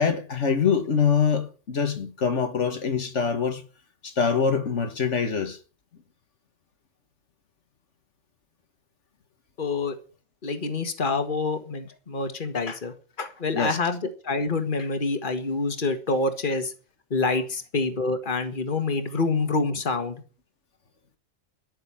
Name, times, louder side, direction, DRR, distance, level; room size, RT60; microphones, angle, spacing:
voice 1, 0.0-3.6 4.0-5.6 13.5-13.8, left 6 dB, 80° left, 1.8 m, -24 dB
voice 2, 9.6-10.0 10.4-16.7 17.1-20.2, left 3 dB, 45° left, 1.9 m, -27 dB
12.5 x 6.8 x 10.0 m
omnidirectional pair, 1.2 m